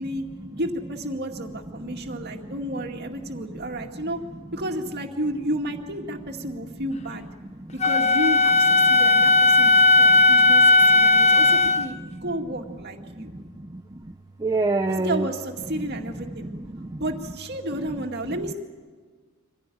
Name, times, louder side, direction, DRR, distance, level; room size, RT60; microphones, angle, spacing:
voice 1, 0.6-4.2 4.5-7.3 7.7-13.3 14.9-16.5 17.0-18.5, right 1 dB, 50° right, 3 dB, 2.1 m, -31 dB
voice 2, 1.9-2.2 2.5-2.8 7.6-7.7 8.8-9.0 9.7-10.2 11.2-11.4 12.1-12.3 13.1-14.1 14.4-15.3 15.7-15.9 16.3-17.0, right 2 dB, 15° right, 4 dB, 0.6 m, -30 dB
Wind instrument woodwind instrument, 7.8-11.9, left 3 dB, 30° left, 0.7 m, -16 dB
25.0 x 16.0 x 9.3 m, 1.5 s
head